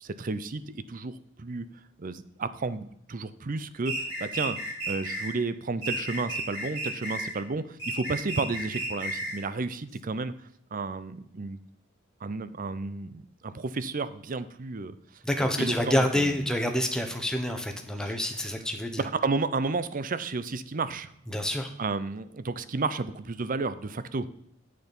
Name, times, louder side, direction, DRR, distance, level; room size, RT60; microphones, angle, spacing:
voice 1, 0.0-1.7 2.0-4.6 4.9-11.6 12.2-16.4 18.0-18.1 19.2-21.1 21.8-24.3, right 3 dB, 40° right, 14 dB, 0.6 m, -32 dB
sound 1, 3.9-5.3 5.8-7.4 7.8-9.4, right 1 dB, 20° right, 3.4 m, -33 dB
voice 2, 15.2-19.0 21.3-21.7, left 1 dB, 5° left, 3 dB, 1.0 m, -27 dB
10.0 x 6.6 x 5.3 m, 0.74 s
head